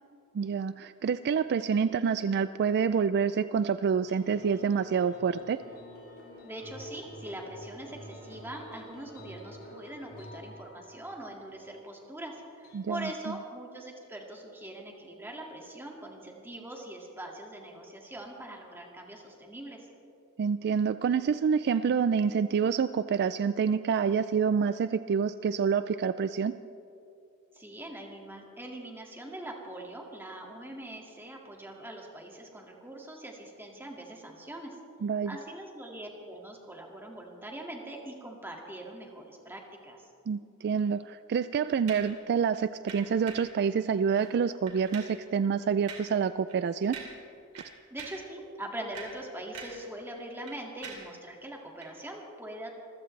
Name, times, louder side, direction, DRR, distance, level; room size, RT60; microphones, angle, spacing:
voice 1, 0.3-5.6 12.7-13.1 20.4-26.6 35.0-35.4 40.3-47.0, right 6 dB, 50° right, 13 dB, 0.3 m, -27 dB
sound 1, 4.0-12.9, equal, 75° left, 4.5 m, -49 dB
voice 2, 6.4-19.9 27.5-34.8 35.3-40.1 47.9-52.7, right 1 dB, 10° right, 0 dB, 2.0 m, -42 dB
sound 2, 41.9-42.2 42.9-43.6 44.1-44.3 44.7-45.2 45.9-46.2 46.5-46.6 46.9-47.3 47.6-48.3 48.8-49.9 50.2-51.2 51.8-51.9, right 5 dB, 80° right, 2.8 m, -45 dB
26.5 x 15.0 x 3.3 m, 2.6 s
head